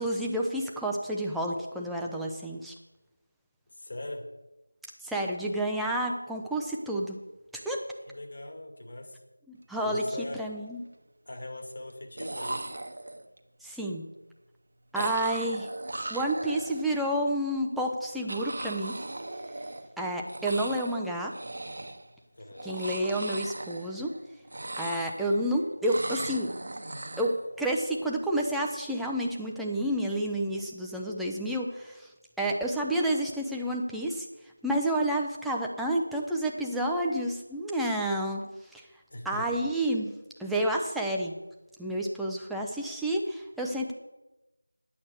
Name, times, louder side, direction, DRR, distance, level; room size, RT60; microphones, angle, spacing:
voice 1, 0.0-2.7 5.0-7.2 7.6-7.8 9.5-10.0 10.4-10.8 13.6-14.0 14.9-15.7 16.1-19.0 20.0-21.3 22.6-24.1 24.8-26.5 27.2-32.1 32.4-34.3 34.6-38.4 38.7-38.8 39.2-40.1 40.4-41.3 41.8-43.9, right 1 dB, ahead, -2 dB, 0.6 m, -30 dB
voice 2, 3.7-4.2 8.1-9.2 9.8-10.5 11.3-12.6 22.3-22.8 39.1-39.6, left 1 dB, 45° left, 3 dB, 2.3 m, -40 dB
sound 1, 10.3-10.9 11.9-12.0 12.2-13.4 14.9-17.1 18.3-20.0 20.3-21.0 21.3-22.1 22.5-24.2 24.4-25.5 25.8-27.4, right 2 dB, 45° right, 1.1 m, -38 dB
11.0 x 8.5 x 6.3 m, 1.0 s
figure-of-eight pair, 170°, 0 cm